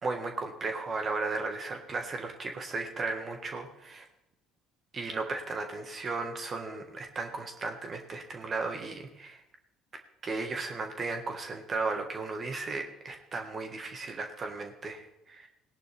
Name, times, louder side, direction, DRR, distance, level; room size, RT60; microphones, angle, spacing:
voice 1, 0.0-4.1 4.9-9.4 10.2-15.5, right 3 dB, 40° right, 4 dB, 1.7 m, -35 dB
18.0 x 11.0 x 3.5 m, 0.91 s
hypercardioid pair, 65°, 0 cm